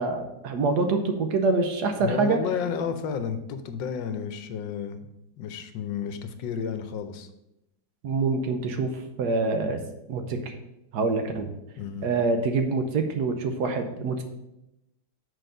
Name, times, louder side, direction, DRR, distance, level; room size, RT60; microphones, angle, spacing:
voice 1, 0.0-2.4 8.0-9.8 10.1-10.5 10.9-11.5 12.0-14.2, right 3 dB, 70° right, 5 dB, 1.2 m, -25 dB
voice 2, 1.9-5.1 5.4-7.3 11.8-12.1, left 7 dB, 80° left, 9 dB, 1.4 m, -32 dB
6.3 x 4.6 x 5.2 m, 0.88 s
omnidirectional pair, 2.0 m